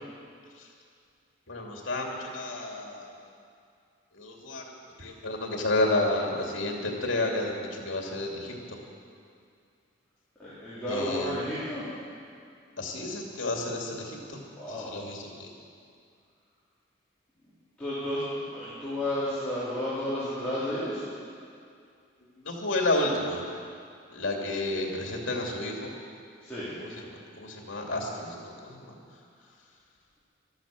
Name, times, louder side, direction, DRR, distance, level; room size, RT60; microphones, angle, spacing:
voice 1, 1.5-3.1 4.1-4.7 5.0-8.8 10.9-11.3 12.8-14.4 14.7-15.5 22.4-23.4 24.1-25.9 26.8-27.1 27.4-29.0, left 2 dB, 75° left, 0 dB, 2.5 m, -31 dB
voice 2, 10.4-11.9 14.6-14.9 17.8-21.0 26.4-26.7, left 1 dB, 5° left, -13 dB, 3.8 m, -32 dB
12.5 x 12.5 x 7.5 m, 2.3 s
head